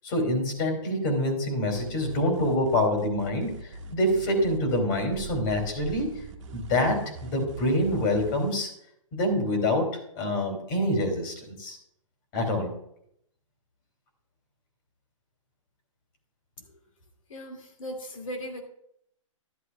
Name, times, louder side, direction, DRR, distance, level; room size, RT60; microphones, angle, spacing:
voice 1, 0.0-6.2 6.5-8.7 9.1-9.9 10.1-11.8 12.3-12.8, left 1 dB, 40° left, 4 dB, 2.7 m, -26 dB
sound 1, 1.7-8.5, right 3 dB, 60° right, 1.4 m, -41 dB
voice 2, 17.3-18.6, equal, 75° left, 3 dB, 2.3 m, -38 dB
12.0 x 11.0 x 2.3 m, 0.73 s
hypercardioid pair, 135°, 17 cm